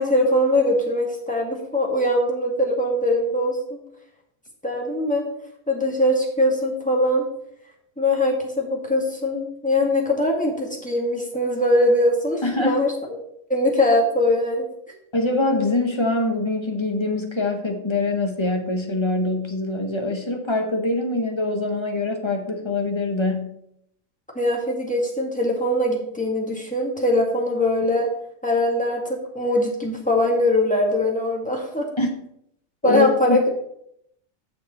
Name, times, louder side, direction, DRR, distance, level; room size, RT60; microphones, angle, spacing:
voice 1, 0.0-3.8 4.6-5.3 5.7-7.3 8.0-13.2 13.5-14.7 24.4-28.1 28.4-31.9 32.8-33.5, left 1 dB, 5° left, -1 dB, 1.8 m, -22 dB
voice 2, 12.4-12.8 15.1-23.5 32.0-32.1 32.8-33.4, left 2 dB, 20° left, 3 dB, 1.1 m, -24 dB
8.7 x 6.5 x 4.3 m, 0.74 s
omnidirectional pair, 1.5 m